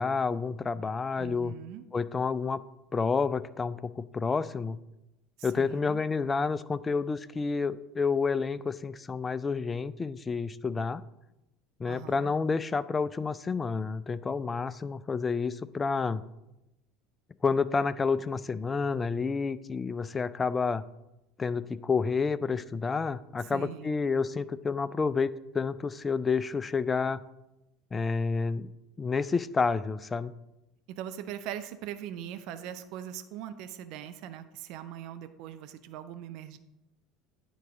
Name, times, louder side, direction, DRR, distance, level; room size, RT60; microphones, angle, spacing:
voice 1, 0.0-1.5 1.9-2.6 2.9-4.8 5.4-11.0 11.8-16.2 17.4-20.8 21.4-27.2 27.9-28.7 29.0-30.3, left 5 dB, 20° left, 16 dB, 0.3 m, -29 dB
voice 2, 1.2-1.8 5.4-6.0 11.9-12.3 23.4-24.0 30.9-36.6, right 10 dB, 50° right, 11 dB, 0.4 m, -41 dB
9.1 x 4.7 x 3.8 m, 0.94 s
figure-of-eight pair, 70°, 0 cm